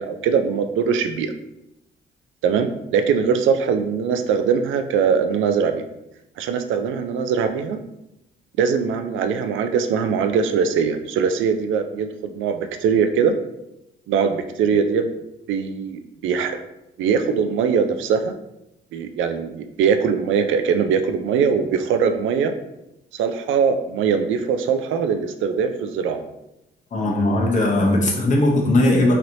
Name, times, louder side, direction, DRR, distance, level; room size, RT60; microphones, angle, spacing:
voice 1, 0.0-1.3 2.4-5.8 6.4-7.8 8.6-13.4 14.1-15.1 15.5-16.6 17.0-18.3 18.9-22.5 23.1-26.2, right 6 dB, 80° right, 8 dB, 0.4 m, -21 dB
voice 2, 26.9-29.1, left 1 dB, 40° left, -1 dB, 0.8 m, -18 dB
3.1 x 2.8 x 2.6 m, 0.87 s
cardioid pair, 90°, 20 cm